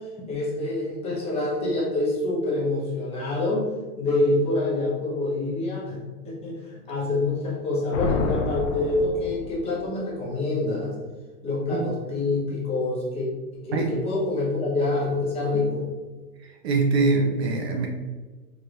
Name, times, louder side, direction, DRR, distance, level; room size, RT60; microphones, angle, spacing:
voice 1, 0.2-3.7 4.0-11.0 11.4-15.8, left 2 dB, 15° left, -5 dB, 0.8 m, -26 dB
sound 1, 7.9-9.9, left 4 dB, 65° left, 0.6 m, -29 dB
voice 2, 16.4-17.9, right 3 dB, 45° right, 2 dB, 0.5 m, -23 dB
4.7 x 3.0 x 2.5 m, 1.4 s
hypercardioid pair, 145°, 45 cm